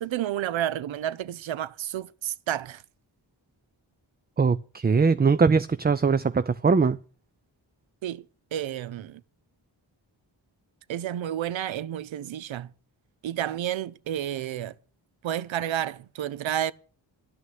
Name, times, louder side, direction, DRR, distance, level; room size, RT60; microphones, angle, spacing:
voice 1, 0.0-2.8 8.0-8.2 8.5-9.2 10.9-12.7 13.2-14.8 15.2-16.7, right 11 dB, 85° right, 0.6 m, -30 dB
voice 2, 4.4-7.0, right 5 dB, 20° right, 0.5 m, -21 dB
11.0 x 6.2 x 8.9 m
cardioid pair, 50°, 45 cm